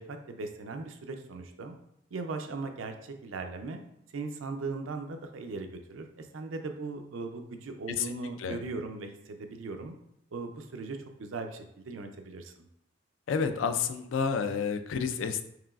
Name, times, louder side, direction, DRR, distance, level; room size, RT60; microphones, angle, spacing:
voice 1, 0.0-1.7 2.1-3.8 4.1-9.9 10.3-12.7, right 3 dB, 80° right, 5 dB, 0.5 m, -38 dB
voice 2, 13.3-15.4, left 6 dB, 75° left, 9 dB, 0.4 m, -30 dB
4.8 x 3.1 x 2.4 m, 0.75 s
head